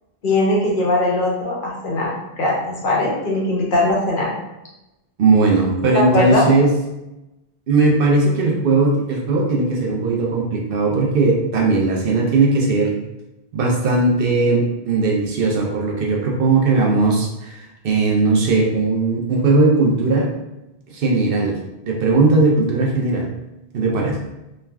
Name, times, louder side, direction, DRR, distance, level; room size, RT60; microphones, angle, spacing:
voice 1, 0.2-4.3 5.9-6.4, left 1 dB, 60° left, -4 dB, 0.9 m, -20 dB
voice 2, 5.2-6.7 7.7-12.9 13.5-20.3 20.9-21.6 21.9-23.3 23.7-24.2, right 3 dB, 65° right, -1 dB, 0.7 m, -18 dB
3.1 x 2.4 x 2.2 m, 0.95 s
omnidirectional pair, 1.1 m